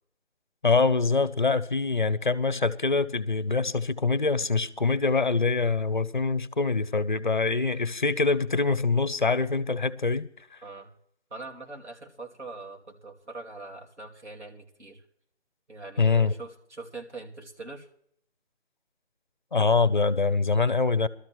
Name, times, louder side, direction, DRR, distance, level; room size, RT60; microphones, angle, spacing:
voice 1, 0.6-10.3 16.0-16.3 19.5-21.1, left 4 dB, 45° left, 0.5 m, -24 dB
voice 2, 10.6-10.9 11.3-15.0 15.7-17.9, right 3 dB, 80° right, 2.7 m, -42 dB
19.0 x 13.0 x 3.0 m
figure-of-eight pair, 180°, 34 cm